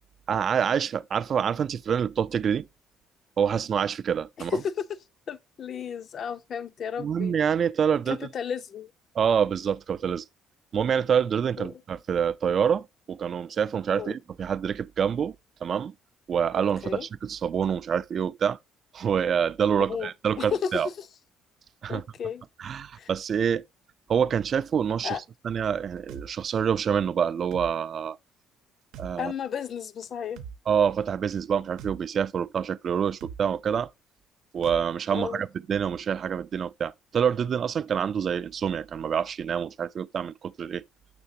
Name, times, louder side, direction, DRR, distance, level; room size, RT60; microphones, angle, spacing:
voice 1, 0.3-2.7 3.4-4.6 7.0-8.3 9.1-10.2 10.7-15.4 15.6-15.9 16.3-18.6 18.9-20.9 21.8-22.0 22.6-23.6 24.1-25.2 25.4-28.2 29.0-29.3 30.7-33.9 34.5-40.8, right 7 dB, 45° right, 0.4 m, -26 dB
voice 2, 4.4-4.9 5.3-7.3 8.1-8.9 11.6-11.8 14.0-14.2 16.8-17.1 19.8-20.1 20.4-20.7 21.0-21.1 21.9-22.4 23.0-23.1 25.0-25.2 29.2-30.4 35.1-35.4, left 7 dB, 50° left, 0.6 m, -33 dB
sound 1, 26.1-26.3 27.5-27.7 28.9-29.1 30.4-30.6 31.8-32.0 33.2-33.4 34.6-34.8, right 7 dB, 85° right, 0.8 m, -40 dB
6.8 x 6.3 x 2.7 m
cardioid pair, 110°, 0 cm